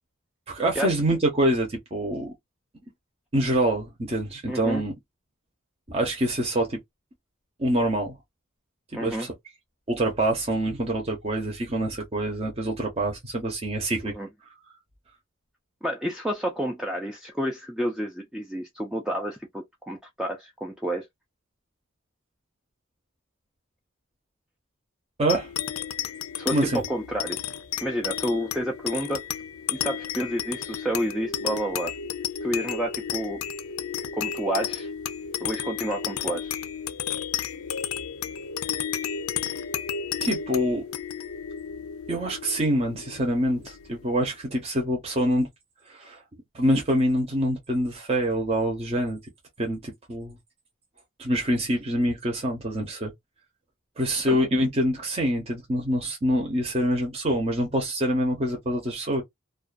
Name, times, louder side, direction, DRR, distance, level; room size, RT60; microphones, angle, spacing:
voice 1, 0.5-2.3 3.3-4.9 5.9-6.8 7.6-8.2 8.9-9.3 9.9-14.1 25.2-25.5 26.5-26.8 40.2-40.8 42.1-45.5 45.9-46.2 46.5-49.2 49.6-50.4 51.2-53.1 54.0-59.2, right 1 dB, 30° right, 0.7 m, -25 dB
voice 2, 4.5-4.8 8.9-9.3 14.1-14.3 15.8-21.1 26.4-27.4 27.8-29.2 29.7-31.9 32.4-33.4 34.1-34.9 35.4-36.5 54.3-54.4, equal, 5° right, 0.3 m, -30 dB
sound 1, 25.3-44.1, left 8 dB, 85° left, 0.4 m, -33 dB
2.3 x 2.3 x 2.4 m
head